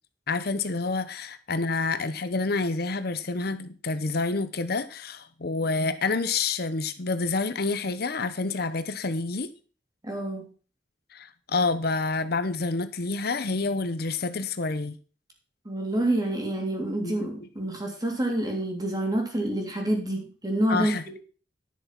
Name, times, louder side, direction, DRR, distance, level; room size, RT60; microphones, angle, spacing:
voice 1, 0.3-9.5 11.1-15.0 17.0-17.3 20.7-21.2, left 3 dB, 60° left, 11 dB, 0.9 m, -28 dB
voice 2, 10.0-10.5 15.6-20.9, right 1 dB, 20° right, 2 dB, 3.3 m, -27 dB
11.0 x 7.0 x 5.9 m, 0.38 s
head